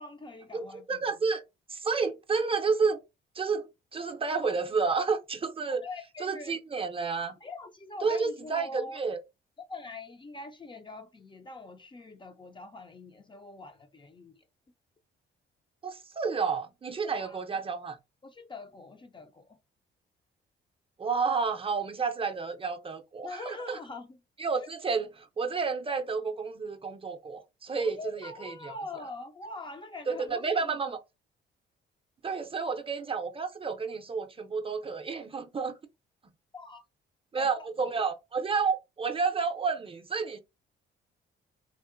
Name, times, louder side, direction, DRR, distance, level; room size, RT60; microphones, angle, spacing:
voice 1, 0.0-1.3 5.7-6.6 7.4-9.0 9.6-14.4 17.0-17.4 18.2-19.6 23.2-24.2 24.6-24.7 27.8-30.8 36.5-36.8 37.4-37.7, left 3 dB, 25° left, 0.5 m, -44 dB
voice 2, 0.5-1.4 1.7-3.0 3.3-5.8 6.2-7.4 8.0-9.2 15.8-18.0 21.0-23.8 24.4-28.7 30.1-31.0 32.2-35.8 37.3-40.4, right 5 dB, 30° right, 0.5 m, -30 dB
3.7 x 2.0 x 2.5 m
cardioid pair, 90°, 20 cm